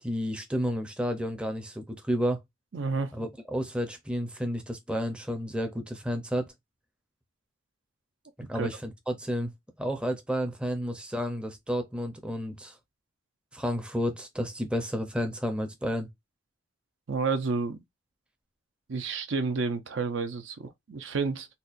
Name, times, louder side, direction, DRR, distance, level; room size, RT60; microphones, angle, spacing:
voice 1, 0.0-2.4 3.1-6.5 8.4-9.5 9.8-12.8 13.5-16.1, equal, 5° right, 0.5 m, -31 dB
voice 2, 2.7-3.1 8.5-8.7 17.1-17.8 18.9-21.5, right 4 dB, 60° right, 0.5 m, -30 dB
4.1 x 2.2 x 2.5 m
head